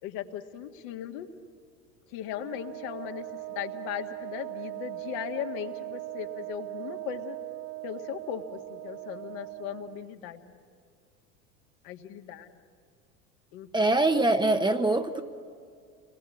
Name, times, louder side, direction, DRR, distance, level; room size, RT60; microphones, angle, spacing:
voice 1, 0.0-1.3 2.1-7.4 7.8-10.6 11.8-12.6 13.5-13.9, left 10 dB, 55° left, 4 dB, 1.9 m, -38 dB
Wind instrument woodwind instrument, 2.3-10.1, right 23 dB, 40° right, 0.6 m, -40 dB
voice 2, 13.7-15.2, right 2 dB, 10° right, 7 dB, 1.1 m, -23 dB
30.0 x 21.0 x 8.6 m, 2.2 s
hypercardioid pair, 80°, 46 cm